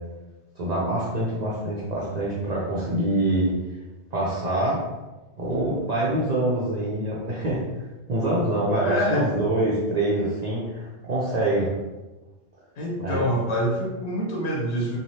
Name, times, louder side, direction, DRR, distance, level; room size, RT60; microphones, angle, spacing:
voice 1, 0.6-3.5 4.1-4.8 5.4-7.6 8.1-11.7 13.0-13.2, right 1 dB, 50° right, -7 dB, 0.6 m, -25 dB
voice 2, 8.8-9.3 12.8-15.0, equal, 85° left, -2 dB, 1.0 m, -26 dB
3.2 x 2.3 x 2.7 m, 1.1 s
omnidirectional pair, 1.1 m